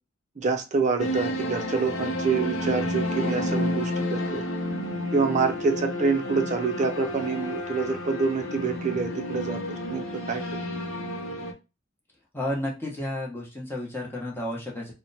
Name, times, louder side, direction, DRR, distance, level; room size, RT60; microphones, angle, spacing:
voice 1, 0.4-4.4 5.1-10.4, right 4 dB, 35° right, 5 dB, 0.5 m, -27 dB
sound 1, 1.0-11.5, left 1 dB, 80° left, 0.7 m, -30 dB
voice 2, 12.3-14.9, left 1 dB, 10° left, -2 dB, 0.9 m, -32 dB
2.9 x 2.1 x 3.9 m, 0.28 s
head